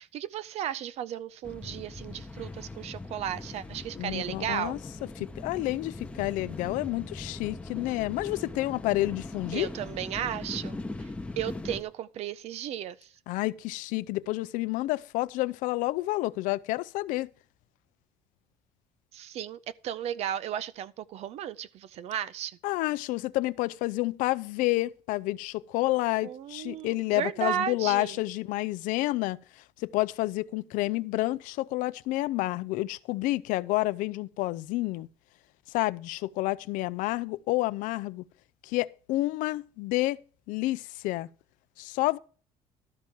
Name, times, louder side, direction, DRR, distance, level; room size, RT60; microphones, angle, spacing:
voice 1, 0.0-4.8 9.5-11.1 11.4-13.1 19.1-22.6 26.2-28.2, right 10 dB, 55° right, 0.5 m, -35 dB
sound 1, 1.4-11.8, left 2 dB, 10° left, 0.7 m, -40 dB
voice 2, 4.0-4.8 5.2-9.7 13.3-17.3 22.6-35.1 35.7-38.2 38.6-40.2 40.5-41.3 41.8-42.2, left 18 dB, 80° left, 0.5 m, -29 dB
12.5 x 4.5 x 7.1 m
cardioid pair, 155°, 13 cm